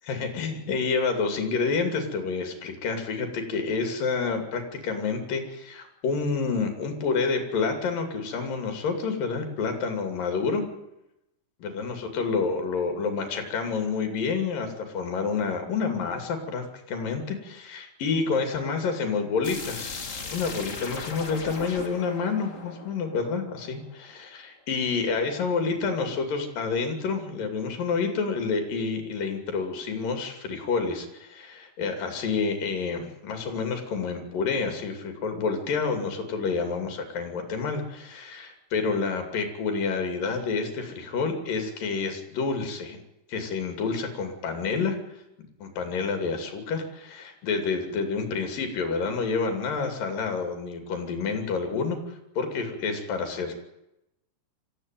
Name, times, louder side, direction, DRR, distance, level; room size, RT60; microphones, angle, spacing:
voice 1, 0.1-10.6 11.6-43.0 43.3-45.0 45.6-53.5, left 4 dB, 85° left, 6 dB, 4.6 m, -29 dB
sound 1, 19.4-24.2, left 4 dB, 30° left, 1.8 m, -38 dB
25.5 x 15.0 x 9.3 m, 0.90 s
omnidirectional pair, 3.8 m